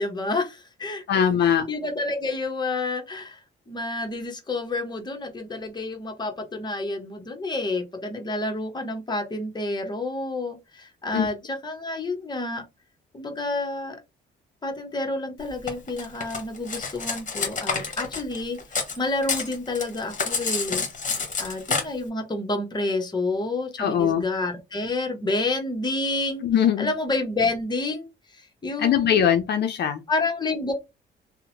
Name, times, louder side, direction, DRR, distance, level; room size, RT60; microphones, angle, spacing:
voice 1, 0.0-3.4 3.7-12.6 13.1-14.0 14.6-18.6 19.0-20.8 21.4-26.5 26.8-29.3 30.1-30.7, left 2 dB, 20° left, 0.9 m, -29 dB
voice 2, 1.1-1.7 11.1-11.3 23.8-24.2 26.4-26.9 28.8-30.0, left 8 dB, 60° left, 0.5 m, -21 dB
Cutlery silverware, 15.7-19.0 19.2-21.8, left 4 dB, 40° left, 1.1 m, -28 dB
2.8 x 2.1 x 2.8 m
cardioid pair, 90°, 20 cm